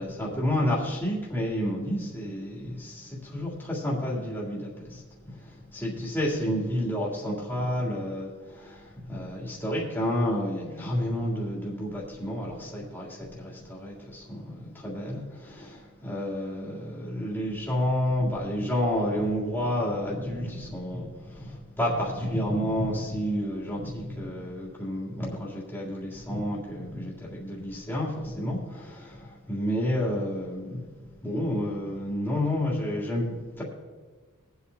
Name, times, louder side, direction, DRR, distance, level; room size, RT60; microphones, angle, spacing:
voice 1, 0.0-33.6, equal, 10° left, -5 dB, 3.0 m, -30 dB
22.5 x 8.1 x 2.8 m, 1.4 s
head